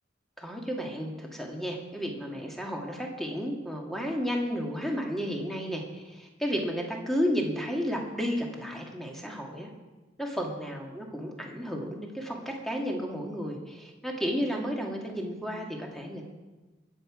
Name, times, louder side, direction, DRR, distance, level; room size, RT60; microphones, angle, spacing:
voice 1, 0.4-9.7 10.2-16.2, equal, ahead, 0 dB, 1.8 m, -32 dB
23.0 x 8.0 x 4.9 m, 1.2 s
head